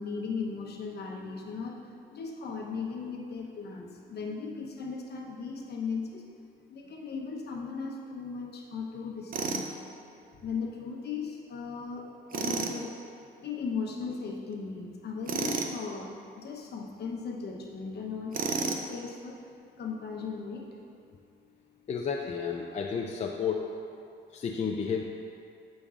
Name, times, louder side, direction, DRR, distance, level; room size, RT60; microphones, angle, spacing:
voice 1, 0.0-1.8 2.1-6.2 6.7-9.7 10.3-12.9 13.4-19.4 19.8-20.7, left 5 dB, 55° left, -1 dB, 0.9 m, -37 dB
Tools, 9.3-9.7 12.3-12.8 15.3-15.8 18.3-18.9, right 4 dB, 45° right, 0.5 m, -31 dB
voice 2, 21.9-23.7 24.3-25.0, left 6 dB, 35° left, 1 dB, 0.4 m, -31 dB
8.3 x 5.2 x 2.4 m, 2.5 s
cardioid pair, 90°, 20 cm